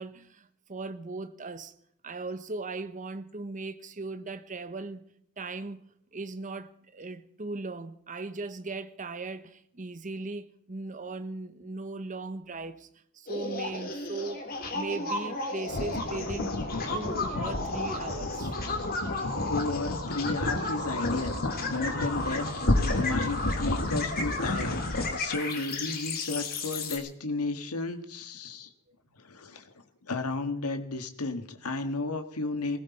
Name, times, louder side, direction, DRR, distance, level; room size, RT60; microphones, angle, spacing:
voice 1, 0.0-1.7 2.0-5.1 5.4-5.8 6.1-12.9 13.1-16.5 16.9-18.5, right 3 dB, 35° right, 1.0 m, -38 dB
sound 1, 13.3-27.0, left 3 dB, 45° left, 3.3 m, -34 dB
sound 2, 15.7-25.2, left 2 dB, 60° left, 2.0 m, -31 dB
voice 2, 19.5-22.5 22.9-28.7 29.2-29.7 30.0-32.8, left 3 dB, 90° left, 1.6 m, -33 dB
19.5 x 16.5 x 4.2 m
head